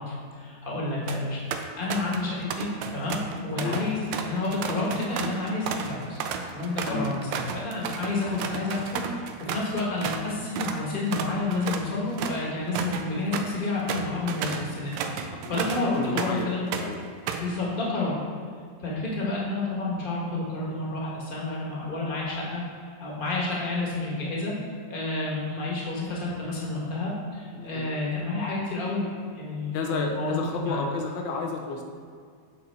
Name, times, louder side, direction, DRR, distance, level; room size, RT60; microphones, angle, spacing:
voice 1, 0.0-6.2 6.5-15.9 16.1-16.7 17.4-18.2 18.8-22.6 23.0-24.5 24.9-29.1 29.3-30.9, left 2 dB, 30° left, -4 dB, 1.4 m, -30 dB
sound 1, 0.9-1.2 1.5-2.2 2.5-10.3 10.6-10.8 11.1-16.4 16.7-17.5, right 6 dB, 90° right, 1.3 m, -33 dB
voice 2, 15.3-17.0 27.5-27.9 29.7-31.8, left 3 dB, 80° left, 1 dB, 1.4 m, -32 dB
7.8 x 4.3 x 4.2 m, 2.1 s
omnidirectional pair, 1.9 m